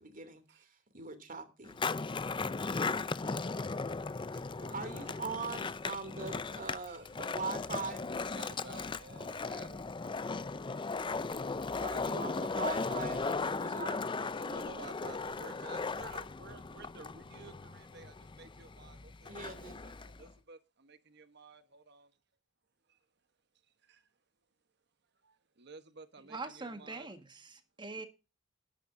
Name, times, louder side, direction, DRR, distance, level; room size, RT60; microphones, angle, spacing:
voice 1, 0.0-1.8 4.7-8.0 10.7-11.3 11.8-14.0 19.3-19.9, right 4 dB, 45° right, 2.8 m, -42 dB
Skateboard, 1.7-20.3, left 4 dB, 25° left, 0.5 m, -37 dB
voice 2, 4.3-5.1 6.9-7.1 8.2-9.8 14.2-22.1 22.9-23.0 23.8-24.0 25.2-27.1, right 4 dB, 60° right, 1.2 m, -53 dB
voice 3, 26.2-28.1, right 3 dB, 25° right, 1.7 m, -43 dB
20.0 x 10.5 x 2.7 m
head